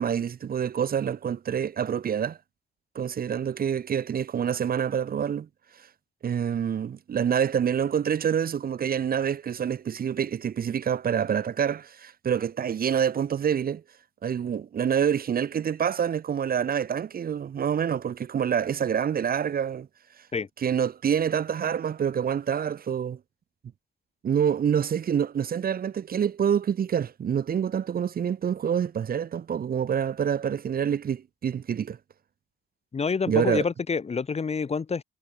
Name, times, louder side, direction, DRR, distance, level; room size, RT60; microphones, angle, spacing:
voice 1, 0.0-2.4 2.9-5.5 5.8-5.9 6.2-13.8 14.2-19.9 20.6-23.2 24.2-32.0 33.3-33.6, right 8 dB, 50° right, 1.2 m, -27 dB
voice 2, 32.9-35.0, left 5 dB, 30° left, 1.4 m, -27 dB
cardioid pair, 90°, 20 cm